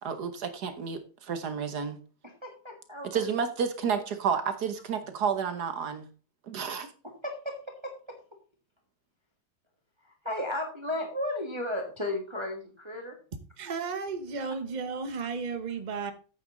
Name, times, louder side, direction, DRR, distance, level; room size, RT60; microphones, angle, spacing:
voice 1, 0.0-2.0 3.1-6.1 6.5-6.9, right 6 dB, 55° right, 9 dB, 1.4 m, -31 dB
voice 2, 2.2-3.3 7.0-8.2 10.0-13.2, left 1 dB, 15° right, 3 dB, 1.5 m, -35 dB
voice 3, 13.6-16.1, right 5 dB, 35° right, 9 dB, 0.7 m, -34 dB
8.9 x 8.3 x 3.8 m, 0.36 s
omnidirectional pair, 2.3 m